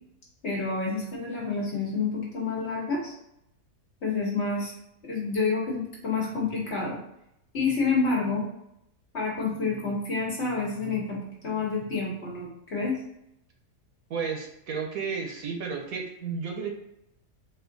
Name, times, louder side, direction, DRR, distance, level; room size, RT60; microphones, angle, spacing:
voice 1, 0.4-3.1 4.0-4.7 5.0-7.0 7.5-8.5 9.1-13.0, left 4 dB, 50° left, -4 dB, 1.3 m, -28 dB
voice 2, 14.1-16.7, right 5 dB, 70° right, 2 dB, 1.1 m, -32 dB
4.2 x 2.4 x 3.8 m, 0.79 s
omnidirectional pair, 1.6 m